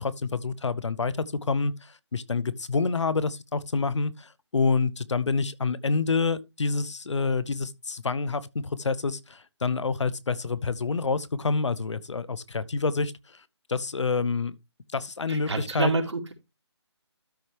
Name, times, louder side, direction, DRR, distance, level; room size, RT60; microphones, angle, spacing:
voice 1, 0.0-13.4 13.7-14.5 14.9-15.9, left 4 dB, 80° left, 0.9 m, -27 dB
voice 2, 15.3-16.3, right 3 dB, 75° right, 2.8 m, -28 dB
13.0 x 4.4 x 3.3 m
hypercardioid pair, 170°, 15 cm